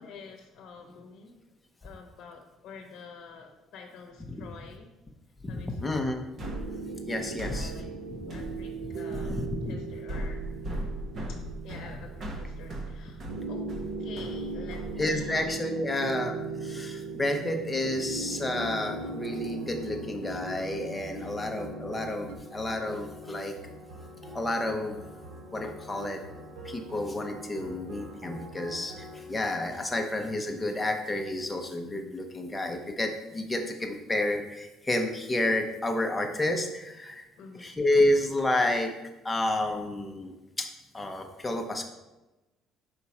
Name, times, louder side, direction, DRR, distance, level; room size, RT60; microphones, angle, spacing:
voice 1, 0.0-1.4 1.8-4.9 5.5-6.1 7.4-7.9 8.3-10.5 11.6-13.2 13.5-13.7 14.0-15.6 21.2-21.3 37.4-37.8, left 5 dB, 50° left, 3 dB, 0.9 m, -48 dB
voice 2, 5.4-6.2 7.1-7.7 8.2-8.3 9.1-9.7 15.0-16.3 16.6-23.6 24.3-25.0 25.5-26.2 26.6-37.3 37.6-38.9 39.2-40.7 40.9-41.9, left 1 dB, 10° left, 3 dB, 0.7 m, -30 dB
sound 1, 6.4-15.5, right 1 dB, 40° right, 0.9 m, -38 dB
sound 2, 6.4-22.4, right 4 dB, 85° right, 0.7 m, -38 dB
sound 3, 18.6-31.0, equal, 65° right, 2.0 m, -45 dB
5.6 x 4.8 x 4.2 m, 1.1 s
cardioid pair, 145°, 0 cm